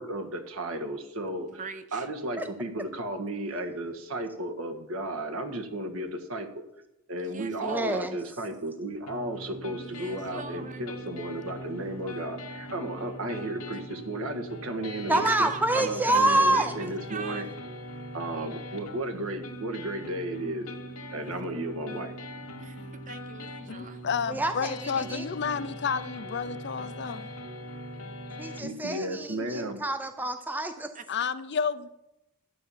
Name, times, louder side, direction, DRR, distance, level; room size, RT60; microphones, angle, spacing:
voice 1, 0.0-1.6 1.9-6.6 7.1-15.5 15.7-17.5 18.1-20.7 21.1-22.1 28.6-29.8, right 1 dB, 65° right, 1.5 m, -34 dB
voice 2, 1.5-2.1 7.2-8.2 9.8-10.8 13.7-13.8 15.1-17.4 21.2-21.3 22.6-24.0 30.9-31.0, right 5 dB, 35° right, 0.8 m, -42 dB
voice 3, 7.6-8.2 15.1-16.7 24.3-25.3 28.4-30.9, right 1 dB, 10° right, 0.5 m, -27 dB
sound 1, 9.1-28.6, equal, 85° left, 1.8 m, -41 dB
voice 4, 23.7-27.3 31.1-31.9, left 6 dB, 50° left, 0.5 m, -31 dB
12.0 x 8.4 x 5.7 m
head